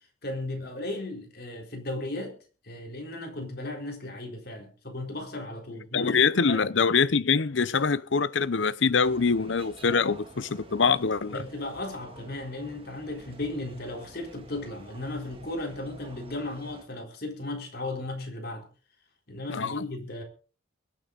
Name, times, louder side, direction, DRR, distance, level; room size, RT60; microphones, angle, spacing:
voice 1, 0.2-2.4 2.6-6.2 6.5-6.7 11.3-18.7 19.3-20.2, left 2 dB, 55° left, 3.9 m, -36 dB
voice 2, 5.9-11.4 19.5-19.8, left 5 dB, 70° left, 0.7 m, -24 dB
sound 1, 9.0-16.9, right 2 dB, 30° right, 1.8 m, -50 dB
24.0 x 8.9 x 4.0 m
head